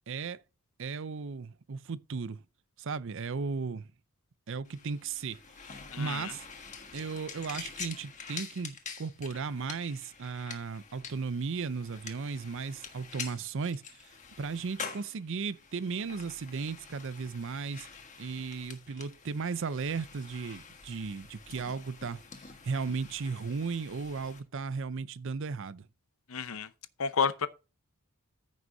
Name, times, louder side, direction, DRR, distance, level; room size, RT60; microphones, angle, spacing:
voice 1, 0.1-0.4 0.8-2.4 2.8-3.9 4.5-5.4 5.6-6.5 6.9-14.1 14.4-17.9 18.2-22.2 22.6-25.9, right 5 dB, 60° right, 0.5 m, -36 dB
sound 1, 4.6-24.4, left 6 dB, 35° left, 1.5 m, -47 dB
voice 2, 5.9-6.3 26.3-26.7 27.0-27.5, left 5 dB, 65° left, 0.7 m, -30 dB
14.5 x 6.2 x 2.7 m
head